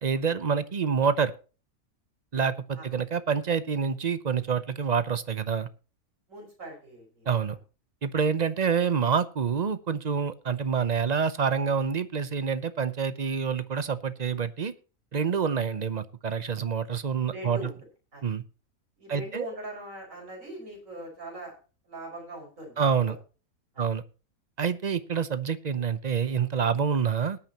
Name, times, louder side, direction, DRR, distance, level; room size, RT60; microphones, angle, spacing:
voice 1, 0.0-1.3 2.3-5.7 7.3-7.6 8.0-14.7 15.1-17.7 18.2-18.4 19.1-19.5 22.8-23.2 23.8-24.0 24.6-27.4, right 6 dB, 40° right, 14 dB, 0.6 m, -27 dB
voice 2, 6.3-7.6 17.3-17.7 18.1-18.2 19.0-21.5 21.9-23.1 23.7-23.8, right 1 dB, 60° right, 0 dB, 6.0 m, -41 dB
20.5 x 9.1 x 2.9 m, 0.35 s
omnidirectional pair, 1.5 m